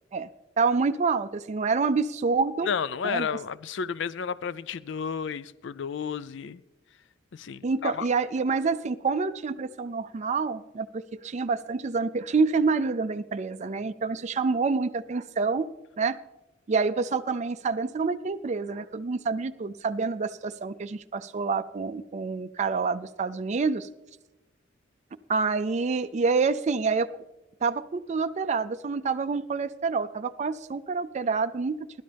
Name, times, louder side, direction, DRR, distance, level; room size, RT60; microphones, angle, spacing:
voice 1, 0.6-2.7 3.0-3.3 7.6-15.7 16.0-16.2 16.7-23.9 25.3-27.1 27.6-31.8, right 4 dB, 35° right, 0.4 m, -27 dB
voice 2, 2.7-6.6 7.3-8.1, left 6 dB, 65° left, 0.4 m, -32 dB
21.5 x 11.5 x 3.4 m
head